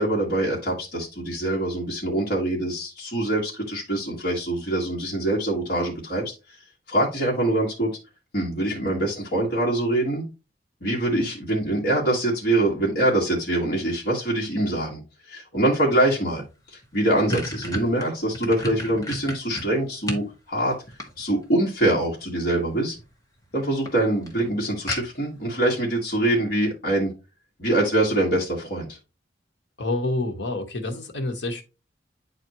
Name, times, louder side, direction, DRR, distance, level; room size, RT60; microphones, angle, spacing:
voice 1, 0.0-6.3 6.9-7.9 8.3-10.3 10.8-15.0 15.3-20.7 21.2-23.0 23.5-27.1 27.6-29.0, right 1 dB, 55° left, 1.8 m, -24 dB
sound 1, 16.4-16.5 16.8-20.3 20.7-21.6 22.7-23.1 23.4-23.5 23.9-24.0 24.3-24.4 24.9-25.4, equal, 20° left, 1.3 m, -32 dB
voice 2, 29.8-31.6, left 2 dB, 75° left, 1.2 m, -28 dB
9.3 x 4.1 x 3.0 m
head